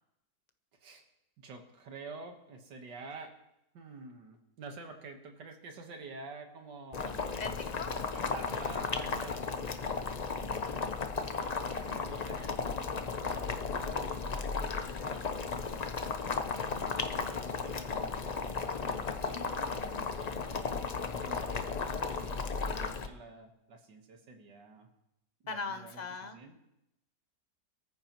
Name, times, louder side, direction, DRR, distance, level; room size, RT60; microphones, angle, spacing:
voice 1, 1.4-3.3 3.7-7.3 7.8-9.9 10.4-10.9 11.3-15.8 16.7-24.9 25.4-26.0 26.3-26.6, right 3 dB, 80° right, 4 dB, 2.0 m, -49 dB
Boiling, 6.9-23.1, left 4 dB, 90° left, 0.3 m, -35 dB
voice 2, 7.4-7.9 10.4-10.9 19.3-19.7 25.5-26.4, left 4 dB, 35° left, 8 dB, 0.7 m, -41 dB
23.0 x 14.0 x 3.0 m, 0.85 s
omnidirectional pair, 1.9 m